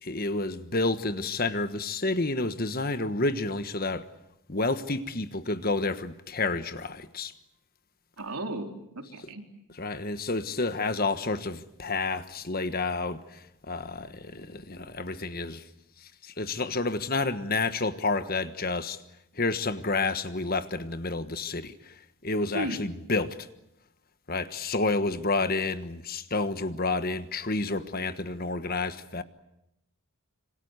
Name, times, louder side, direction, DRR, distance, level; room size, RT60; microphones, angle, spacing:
voice 1, 0.0-4.1 4.5-7.3 9.8-15.6 16.0-19.0 19.3-23.5 24.3-29.2, left 3 dB, 40° left, 1.4 m, -30 dB
voice 2, 8.2-9.4 22.5-22.8, right 2 dB, 90° right, 4.0 m, -35 dB
26.5 x 26.0 x 8.2 m
head